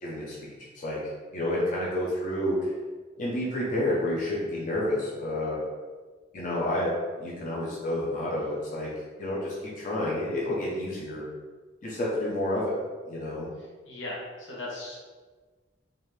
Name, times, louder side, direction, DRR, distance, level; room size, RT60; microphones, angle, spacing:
voice 1, 0.0-1.0 1.3-2.7 3.2-5.6 6.3-6.9 7.2-8.9 9.2-11.2 11.8-12.7 13.1-13.5, left 1 dB, 45° left, -6 dB, 0.7 m, -29 dB
voice 2, 13.6-14.9, left 2 dB, 85° left, -5 dB, 1.1 m, -38 dB
3.8 x 2.8 x 3.2 m, 1.4 s
head